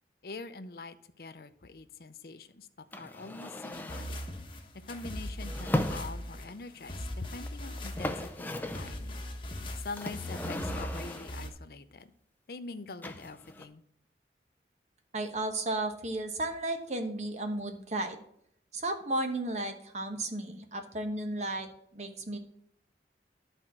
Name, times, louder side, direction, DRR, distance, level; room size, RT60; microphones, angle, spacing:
voice 1, 0.2-2.7 3.0-4.2 4.9-9.2 9.8-12.1 12.5-13.8, left 3 dB, 55° left, 11 dB, 0.6 m, -44 dB
sound 1, 2.9-4.2 5.4-6.5 7.5-7.6 7.8-9.0 10.0-11.5 13.0-13.7, left 1 dB, 10° left, 0.5 m, -36 dB
sound 2, 3.7-11.5, left 1 dB, 30° left, 1.1 m, -40 dB
voice 2, 15.1-18.2 18.7-22.4, right 2 dB, 40° right, 6 dB, 1.1 m, -34 dB
11.0 x 4.5 x 6.1 m, 0.69 s
head